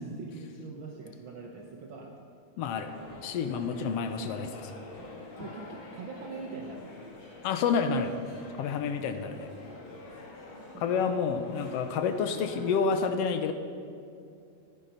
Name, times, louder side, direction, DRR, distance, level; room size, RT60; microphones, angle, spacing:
voice 1, 0.0-2.2 5.4-7.1 9.9-10.0 10.7-11.1, right 4 dB, 65° right, 0 dB, 1.3 m, -43 dB
voice 2, 2.6-2.9 3.2-4.7 7.4-8.2 8.6-9.5 10.8-13.5, left 5 dB, 75° left, 8 dB, 1.6 m, -29 dB
sound 1, 2.7-12.8, left 2 dB, 45° left, 2.5 m, -47 dB
14.0 x 9.7 x 5.6 m, 2.4 s
omnidirectional pair, 3.3 m